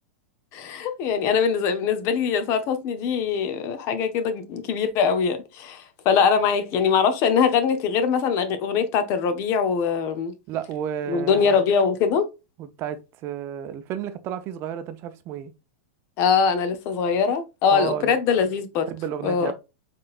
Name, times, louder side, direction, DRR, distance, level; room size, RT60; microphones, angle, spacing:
voice 1, 0.5-10.3 11.1-12.3 16.2-18.9 19.2-19.5, left 6 dB, 45° left, 0.8 m, -22 dB
voice 2, 10.5-11.6 12.6-15.5 17.7-18.2 18.9-19.5, right 9 dB, 40° right, 0.6 m, -32 dB
4.0 x 3.8 x 2.4 m
hypercardioid pair, 120°, 6 cm